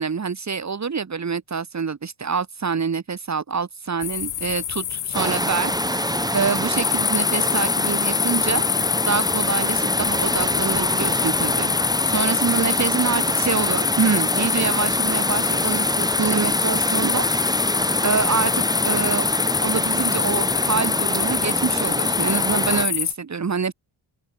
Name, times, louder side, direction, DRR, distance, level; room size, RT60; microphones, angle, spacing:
voice 1, 0.0-8.6 9.1-11.7 12.1-19.3 19.6-23.7, right 5 dB, 35° right, 1.8 m, -26 dB
sound 1, 4.0-23.1, left 10 dB, 40° left, 0.6 m, -25 dB
sound 2, 5.1-22.9, right 1 dB, 10° right, 1.4 m, -26 dB
open air
wide cardioid pair, 130°, 49 cm